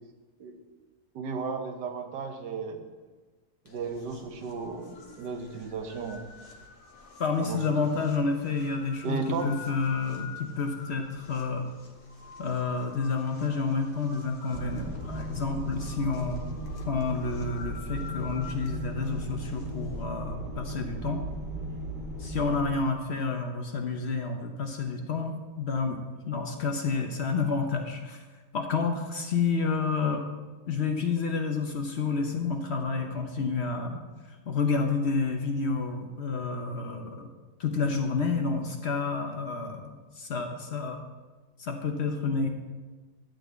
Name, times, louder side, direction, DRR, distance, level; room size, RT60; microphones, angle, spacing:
voice 1, 1.1-2.9 3.6-6.2 7.4-7.8 9.0-9.5, right 5 dB, 80° right, 5 dB, 1.6 m, -34 dB
sound 1, 3.7-20.0, left 5 dB, 75° left, 1.8 m, -48 dB
voice 2, 7.2-11.7 12.4-16.4 16.9-21.2 22.2-26.0 26.3-28.2 28.5-30.2 30.7-34.0 34.5-37.3 37.6-39.8 40.2-41.0 41.6-42.5, left 4 dB, 50° left, 4 dB, 0.8 m, -29 dB
sound 2, 14.5-22.7, right 1 dB, 30° right, 1.8 m, -36 dB
11.5 x 4.0 x 8.0 m, 1.3 s
omnidirectional pair, 1.8 m